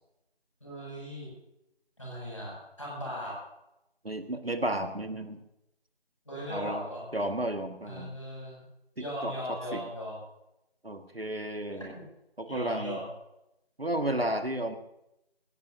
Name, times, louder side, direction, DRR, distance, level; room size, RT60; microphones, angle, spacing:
voice 1, 0.6-1.3 2.0-3.3 6.3-7.0 7.8-8.6 9.0-10.2 11.7-11.8 12.5-13.1, equal, 30° left, -4 dB, 7.4 m, -38 dB
voice 2, 4.0-5.4 6.5-6.8 7.1-8.1 9.0-9.8 10.8-11.9 12.4-13.0 13.8-14.8, right 1 dB, 70° right, 6 dB, 1.9 m, -32 dB
20.5 x 17.5 x 2.8 m, 0.86 s
figure-of-eight pair, 180°, 31 cm